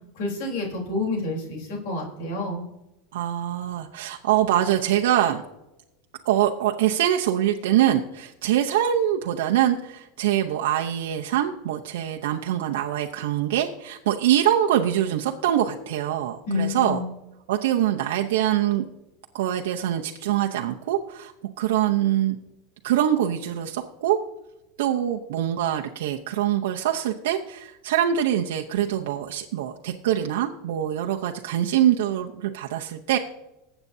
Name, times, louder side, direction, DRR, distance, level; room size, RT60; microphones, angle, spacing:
voice 1, 0.2-2.6 16.5-17.1, left 3 dB, 65° left, 0 dB, 3.6 m, -28 dB
voice 2, 3.1-5.4 6.2-17.0 17.5-18.8 19.3-21.3 21.6-22.4 22.8-24.2 24.8-33.2, right 11 dB, 85° right, 1 dB, 0.7 m, -24 dB
20.5 x 8.0 x 2.7 m, 0.95 s
supercardioid pair, 150°, 0 cm